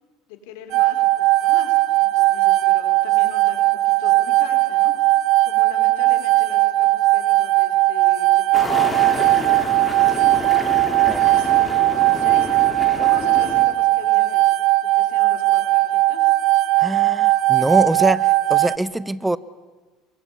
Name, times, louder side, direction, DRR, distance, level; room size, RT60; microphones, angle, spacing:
voice 1, 0.3-4.9 5.4-12.6 13.0-14.5 14.9-16.2, left 8 dB, 85° left, 6 dB, 4.1 m, -40 dB
sound 1, 0.7-18.8, right 17 dB, 55° right, 0.8 m, -18 dB
sound 2, 8.5-13.7, left 2 dB, 15° left, 2.6 m, -30 dB
voice 2, 16.8-19.4, right 1 dB, 5° right, 17 dB, 0.7 m, -23 dB
23.5 x 23.5 x 8.4 m, 1.3 s
cardioid pair, 140°, 0 cm